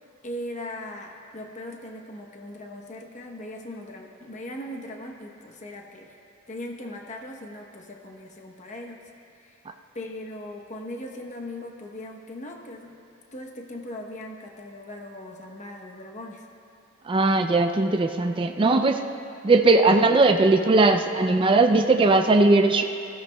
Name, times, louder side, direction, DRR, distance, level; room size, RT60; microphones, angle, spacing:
voice 1, 0.2-6.1 6.5-9.0 9.9-13.0 13.3-16.4, left 1 dB, 35° left, 1 dB, 0.9 m, -39 dB
voice 2, 17.1-19.0 19.4-22.8, right 3 dB, 25° right, 5 dB, 0.4 m, -19 dB
19.0 x 14.5 x 2.2 m, 2.7 s
head